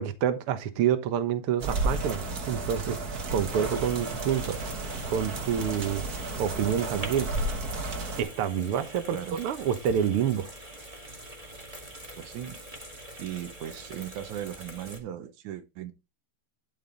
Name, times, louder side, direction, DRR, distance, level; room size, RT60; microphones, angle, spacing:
voice 1, 0.0-3.0 3.3-4.6 5.1-7.3 8.2-10.5, right 9 dB, 60° right, 1.8 m, -28 dB
sound 1, 1.6-8.2, right 2 dB, 40° right, 1.6 m, -32 dB
sound 2, 3.5-15.0, right 1 dB, 15° right, 1.9 m, -44 dB
voice 2, 12.2-12.6 13.2-15.9, right 11 dB, 85° right, 2.5 m, -37 dB
12.0 x 5.6 x 4.0 m
omnidirectional pair, 3.3 m